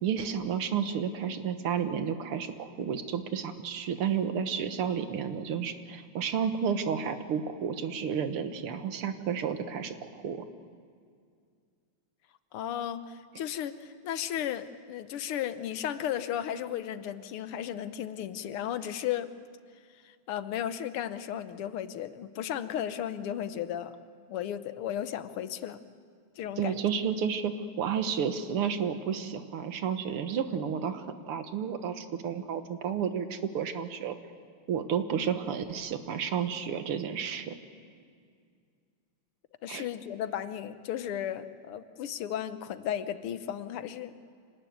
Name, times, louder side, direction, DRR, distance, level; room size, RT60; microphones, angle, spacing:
voice 1, 0.0-10.4 26.6-34.2 34.7-37.5 39.7-39.8, right 7 dB, 85° right, 9 dB, 2.2 m, -31 dB
voice 2, 12.5-19.3 20.0-23.9 24.3-25.8 26.4-26.8 35.2-35.3 39.6-44.1, left 10 dB, 85° left, 12 dB, 1.8 m, -35 dB
25.5 x 19.0 x 9.4 m, 2.2 s
omnidirectional pair, 2.4 m